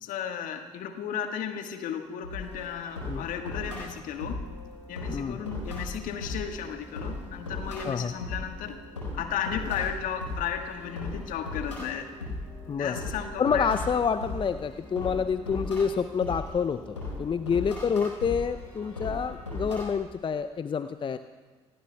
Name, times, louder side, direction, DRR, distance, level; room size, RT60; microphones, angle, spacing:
voice 1, 0.0-4.4 4.9-8.8 9.1-12.1 12.8-13.7, left 8 dB, 60° left, 6 dB, 1.5 m, -34 dB
sound 1, 2.2-19.8, left 2 dB, 90° left, 4.5 m, -38 dB
voice 2, 5.1-5.4 7.8-8.1 12.7-13.0 13.4-21.2, left 6 dB, 35° left, 11 dB, 0.6 m, -28 dB
28.0 x 18.0 x 2.3 m, 1.4 s
figure-of-eight pair, 45°, 15 cm